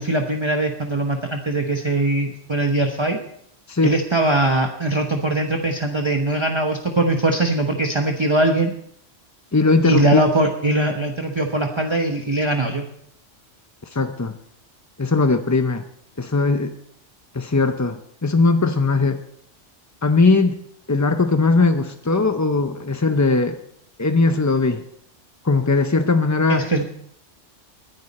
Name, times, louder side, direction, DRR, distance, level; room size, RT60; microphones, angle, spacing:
voice 1, 0.0-3.2 3.8-8.7 9.8-12.8 26.5-26.8, right 2 dB, 25° right, 3 dB, 1.0 m, -21 dB
voice 2, 9.5-10.3 13.9-14.4 15.0-15.8 16.2-16.7 17.3-19.2 20.0-20.6 20.9-23.6 24.0-24.8 25.4-26.7, left 3 dB, 25° left, 7 dB, 0.4 m, -19 dB
20.5 x 11.0 x 4.2 m, 0.69 s
omnidirectional pair, 1.3 m